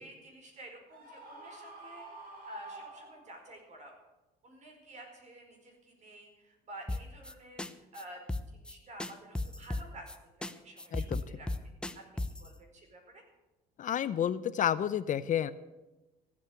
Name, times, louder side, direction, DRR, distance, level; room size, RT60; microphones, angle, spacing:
voice 1, 0.0-3.9 4.4-8.2 8.5-11.5 12.4-13.2, right 1 dB, 45° right, 3 dB, 4.7 m, -51 dB
Screaming, 0.9-3.6, right 2 dB, 60° right, 6.1 m, -48 dB
sound 1, 6.9-7.3 7.6-7.7 8.0-8.1 8.3-8.7 9.0-10.2 10.4-10.5 10.8-12.5, left 2 dB, 5° left, 0.8 m, -35 dB
voice 2, 10.9-11.2 13.8-15.5, left 10 dB, 50° left, 15 dB, 0.6 m, -30 dB
15.0 x 8.6 x 7.8 m, 1.0 s
cardioid pair, 110°, 17 cm